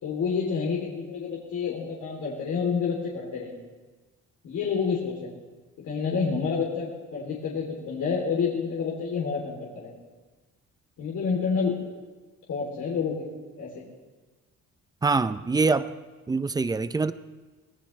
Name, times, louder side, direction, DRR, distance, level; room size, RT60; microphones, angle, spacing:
voice 1, 0.0-3.6 4.4-5.3 5.8-9.9 11.0-11.8 12.5-13.3 13.6-13.8, left 5 dB, 75° left, 3.2 m, -29 dB
voice 2, 15.0-15.9 16.3-17.1, right 4 dB, 15° right, 0.4 m, -24 dB
24.5 x 18.0 x 3.2 m
cardioid pair, 145°, 30 cm